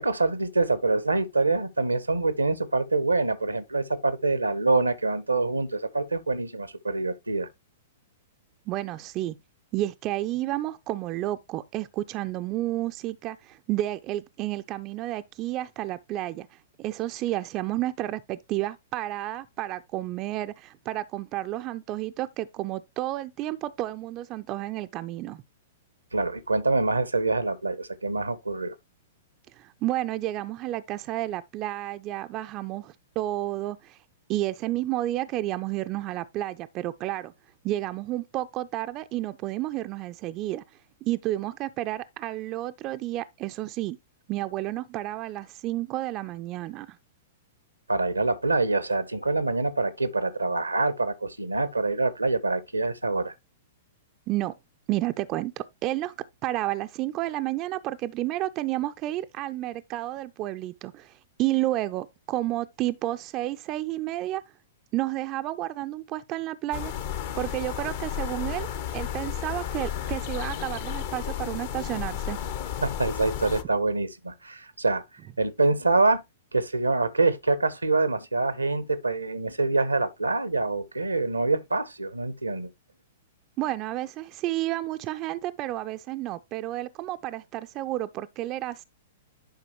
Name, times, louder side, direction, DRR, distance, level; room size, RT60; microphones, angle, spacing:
voice 1, 0.0-7.5 26.1-28.7 47.9-53.3 72.8-75.0 75.4-76.2 76.5-82.7, right 3 dB, 80° right, 0.8 m, -25 dB
voice 2, 8.7-9.4 9.7-16.5 16.8-25.4 29.6-34.0 34.3-37.3 37.6-40.6 41.0-44.0 44.3-47.0 54.3-54.5 54.9-56.1 56.4-61.1 61.4-64.4 64.9-66.9 67.3-68.7 68.9-72.4 83.6-88.8, right 15 dB, 30° right, 0.4 m, -31 dB
sound 1, 66.7-73.6, left 9 dB, 50° left, 0.9 m, -33 dB
10.5 x 5.0 x 2.9 m
figure-of-eight pair, 105°, 0 cm